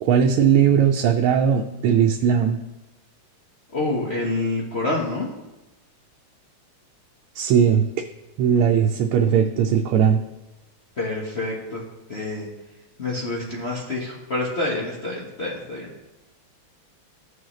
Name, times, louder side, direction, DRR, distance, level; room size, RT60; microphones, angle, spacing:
voice 1, 0.0-2.6 7.3-7.9 8.4-10.2, right 8 dB, 90° right, 3 dB, 1.5 m, -18 dB
voice 2, 3.7-5.3 11.0-11.8 12.1-12.5 13.0-15.9, left 2 dB, 35° left, -4 dB, 1.2 m, -27 dB
14.5 x 6.5 x 3.1 m, 1.0 s
omnidirectional pair, 2.3 m